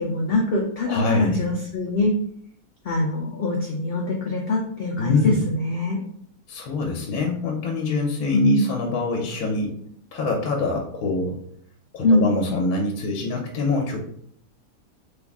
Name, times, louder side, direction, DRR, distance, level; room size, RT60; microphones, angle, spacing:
voice 1, 0.0-2.1 2.9-6.0 8.3-8.7 12.0-12.3, left 2 dB, 70° left, -1 dB, 0.5 m, -23 dB
voice 2, 0.9-1.4 5.0-5.4 6.5-9.8 10.1-11.4 11.9-14.0, left 3 dB, 85° left, 0 dB, 1.1 m, -25 dB
3.4 x 2.3 x 3.5 m, 0.64 s
omnidirectional pair, 1.5 m